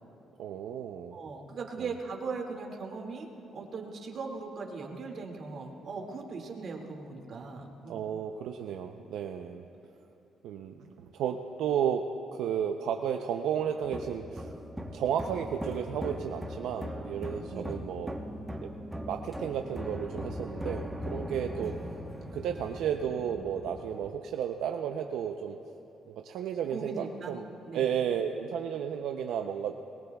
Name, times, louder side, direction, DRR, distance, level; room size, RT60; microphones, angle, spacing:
voice 1, 0.4-1.2 1.8-1.9 7.9-9.6 10.4-14.5 14.9-18.1 18.6-18.7 19.0-21.8 22.3-25.6 26.1-27.4 27.7-29.7, right 8 dB, 85° right, 4 dB, 0.6 m, -33 dB
voice 2, 1.1-8.0 17.5-17.8 21.5-21.7 26.7-27.3 27.7-27.9, right 4 dB, 55° right, 1 dB, 2.1 m, -39 dB
sound 1, 13.8-24.1, equal, 5° right, 1.0 m, -40 dB
22.5 x 21.0 x 2.3 m, 2.8 s
cardioid pair, 90°, 0 cm